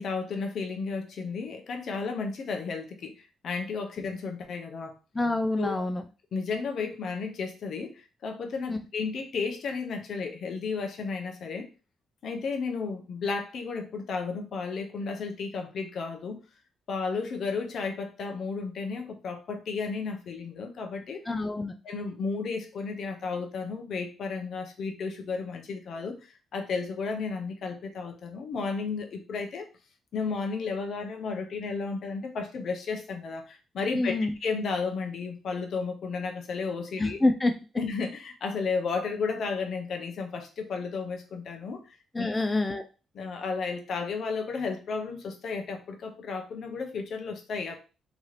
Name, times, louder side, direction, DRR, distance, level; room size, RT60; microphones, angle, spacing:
voice 1, 0.0-4.9 5.6-5.8 6.3-11.7 12.2-16.4 16.9-21.2 21.8-26.2 26.5-29.7 30.1-37.2 37.8-42.3 43.1-47.8, left 4 dB, 60° left, 0.7 m, -33 dB
voice 2, 5.2-6.0 8.7-8.8 21.3-21.7 33.9-34.3 37.0-37.5 42.2-42.8, left 2 dB, 20° left, 0.3 m, -26 dB
2.9 x 2.4 x 3.1 m
cardioid pair, 90°, 0 cm